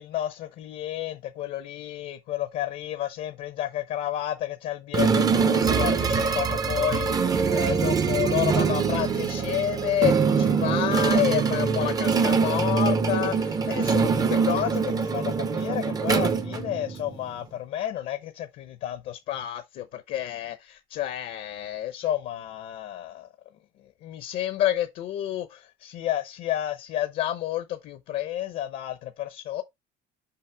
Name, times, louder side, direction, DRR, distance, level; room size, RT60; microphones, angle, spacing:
voice 1, 0.0-23.3 24.0-29.6, left 12 dB, 50° left, 0.7 m, -30 dB
sound 1, 4.9-17.2, right 5 dB, 20° right, 0.6 m, -24 dB
5.7 x 5.6 x 3.3 m
cardioid pair, 175°, 19 cm